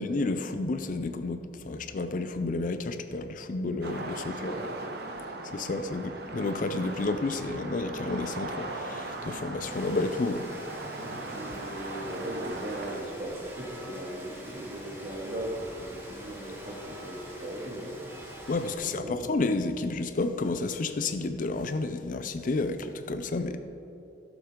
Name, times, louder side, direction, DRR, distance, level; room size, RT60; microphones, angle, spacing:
voice 1, 0.0-4.6 5.5-10.5 18.5-23.6, left 3 dB, 50° left, 9 dB, 0.5 m, -31 dB
sound 1, 3.8-13.0, right 2 dB, 65° right, 1.0 m, -39 dB
voice 2, 4.2-4.7 10.9-18.2 18.7-19.3, right 1 dB, 45° right, -1 dB, 2.0 m, -38 dB
Rain, 9.6-18.8, equal, 15° right, 1.7 m, -45 dB
16.0 x 7.1 x 3.7 m, 3.0 s
head